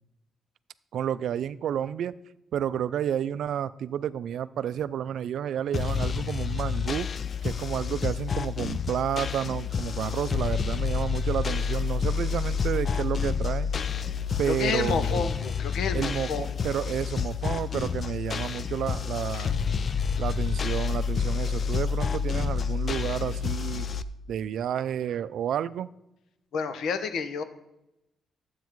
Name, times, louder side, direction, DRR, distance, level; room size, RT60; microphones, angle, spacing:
voice 1, 0.9-2.1 2.5-7.1 7.4-13.7 14.4-15.3 15.9-19.5 20.2-23.9 24.3-25.9, right 9 dB, 70° right, 16 dB, 0.4 m, -30 dB
sound 1, 5.7-24.0, left 6 dB, 40° left, 0.4 m, -29 dB
voice 2, 14.4-16.8 19.3-19.5 26.5-27.4, left 5 dB, 70° left, 10 dB, 0.9 m, -30 dB
12.0 x 8.2 x 4.6 m, 0.89 s
cardioid pair, 150°, 0 cm